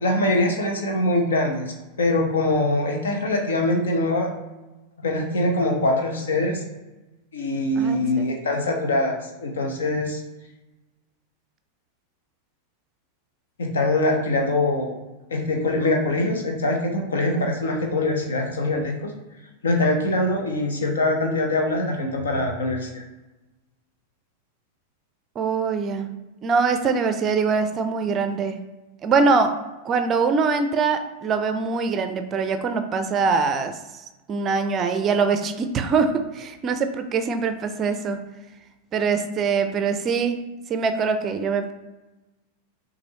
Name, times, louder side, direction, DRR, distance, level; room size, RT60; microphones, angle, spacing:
voice 1, 0.0-4.3 5.0-6.6 7.3-10.2 13.6-15.0 15.3-19.1 19.6-23.0, left 2 dB, 65° left, 2 dB, 0.9 m, -23 dB
voice 2, 7.8-8.4 25.4-26.1 26.4-28.6 29.0-29.5 29.8-33.8 34.3-38.2 38.9-40.4 40.7-41.7, right 5 dB, 30° right, 8 dB, 0.5 m, -23 dB
6.1 x 2.6 x 2.9 m, 1.1 s
figure-of-eight pair, 90°, 0 cm